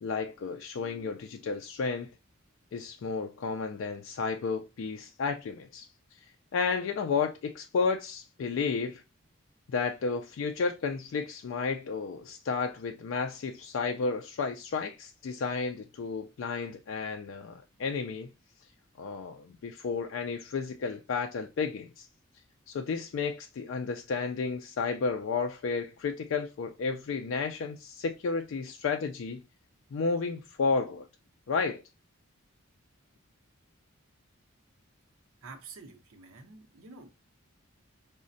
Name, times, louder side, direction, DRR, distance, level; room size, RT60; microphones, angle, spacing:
voice 1, 0.0-2.1 2.7-6.3 6.5-9.0 9.7-18.3 19.0-22.1 22.7-29.4 29.9-31.1 31.5-31.8, left 5 dB, 60° left, 0.3 m, -32 dB
voice 2, 35.4-37.3, right 4 dB, 80° right, 0.7 m, -49 dB
4.9 x 2.1 x 2.5 m
head